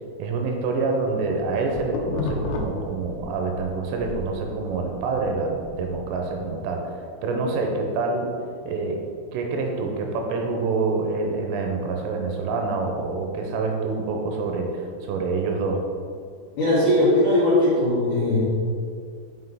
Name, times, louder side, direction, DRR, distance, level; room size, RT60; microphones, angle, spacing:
voice 1, 0.2-6.8 7.2-8.3 8.7-9.0 9.3-15.8, right 3 dB, 90° right, 2 dB, 3.3 m, -26 dB
sound 1, 1.1-3.7 4.0-6.4, left 3 dB, 80° left, 3.3 m, -32 dB
voice 2, 16.6-18.4, left 1 dB, 65° left, -11 dB, 2.1 m, -19 dB
7.8 x 5.7 x 3.8 m, 2.2 s
omnidirectional pair, 5.9 m